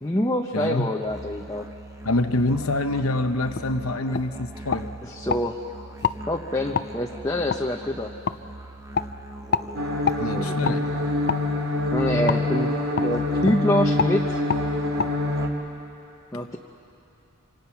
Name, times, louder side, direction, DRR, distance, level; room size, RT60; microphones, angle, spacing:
voice 1, 0.0-1.7 5.0-5.5 6.2-8.1 10.3-10.8 11.9-14.4 16.3-16.6, left 1 dB, 15° left, 1 dB, 0.9 m, -26 dB
voice 2, 0.5-0.9 2.0-4.9 10.2-10.9, left 2 dB, 80° left, 8 dB, 1.0 m, -25 dB
Musical instrument, 1.0-15.8, right 1 dB, 15° right, 1.1 m, -40 dB
sound 1, 3.5-3.7 4.1-4.3 4.7-5.4 6.0-6.2 6.7-6.9 7.5-7.6 8.3-8.4 8.9-9.1 9.5-9.7 10.1-10.2 10.6-10.8 11.3-11.4 12.3-12.4 13.0-13.1 13.4-13.6 14.0-14.1 14.5-14.6 15.0-15.1, left 6 dB, 50° left, 0.6 m, -26 dB
sound 2, 9.7-15.5, left 1 dB, 75° right, 2.7 m, -25 dB
27.0 x 26.5 x 5.9 m, 2.8 s
head